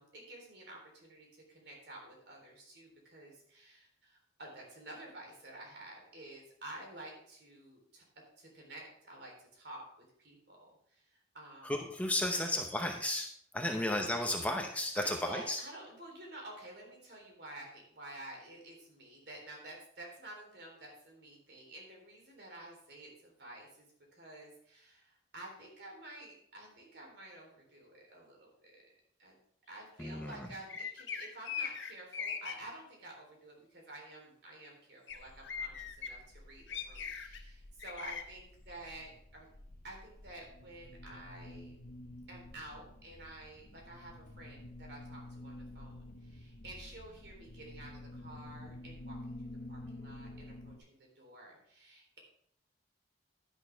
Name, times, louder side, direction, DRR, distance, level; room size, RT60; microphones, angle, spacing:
voice 1, 0.0-8.0 8.4-9.9 10.2-11.0 11.3-11.8 12.3-12.4 13.6-13.9 15.0-23.9 24.1-28.8 29.2-29.3 29.7-39.5 39.8-41.8 42.3-49.2 49.7-52.2, right 1 dB, 55° right, -1 dB, 3.7 m, -51 dB
voice 2, 11.6-13.3 13.5-15.6 30.0-30.5, left 1 dB, 5° left, 2 dB, 0.7 m, -33 dB
sound 1, 30.7-32.5 35.1-35.2 35.4-36.1 36.7-37.4 37.8-38.2, left 7 dB, 70° left, 1.4 m, -39 dB
sound 2, 35.1-50.8, left 1 dB, 45° left, 0.8 m, -50 dB
11.0 x 10.5 x 3.5 m, 0.67 s
head